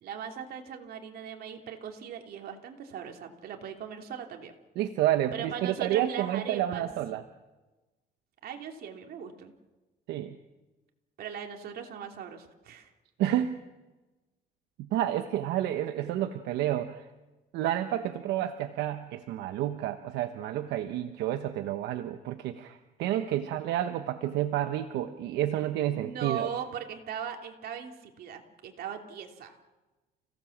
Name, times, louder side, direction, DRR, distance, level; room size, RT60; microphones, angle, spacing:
voice 1, 0.0-4.5 5.3-6.9 8.4-9.5 11.2-12.9 16.0-16.1 25.9-29.5, right 8 dB, 65° right, 3 dB, 3.1 m, -39 dB
voice 2, 4.8-7.2 10.1-10.4 13.2-13.6 14.8-17.1 17.5-26.5, right 12 dB, 85° right, 8 dB, 1.1 m, -30 dB
30.0 x 17.0 x 7.4 m, 1.2 s
cardioid pair, 110°, 17 cm